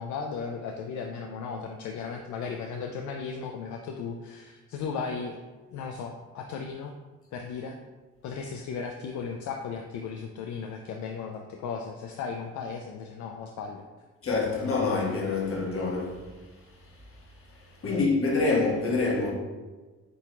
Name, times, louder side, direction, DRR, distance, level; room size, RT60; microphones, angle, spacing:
voice 1, 0.0-5.4 5.7-6.9 7.3-7.8 8.2-13.8 17.8-18.1, left 5 dB, 70° left, 0.5 m, -36 dB
voice 2, 14.2-16.2 17.8-19.3, left 3 dB, 45° left, 1.3 m, -26 dB
7.9 x 2.9 x 2.3 m
cardioid pair, 90°, 30 cm